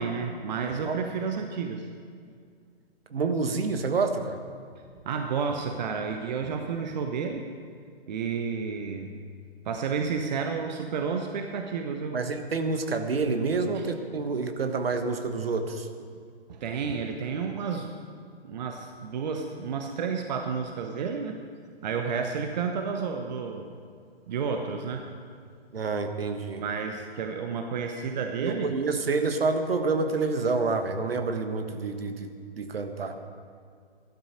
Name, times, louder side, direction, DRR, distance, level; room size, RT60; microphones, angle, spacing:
voice 1, 0.0-1.9 5.0-7.5 8.1-9.1 9.6-12.2 13.7-13.8 16.5-17.9 18.4-21.4 21.8-23.7 24.3-25.1 26.6-28.7, right 5 dB, 40° right, 4 dB, 1.0 m, -31 dB
voice 2, 3.1-4.4 12.1-15.9 25.7-26.6 28.4-33.2, right 4 dB, 65° right, 7 dB, 1.4 m, -28 dB
15.0 x 12.0 x 5.1 m, 2.2 s
figure-of-eight pair, 130°, 32 cm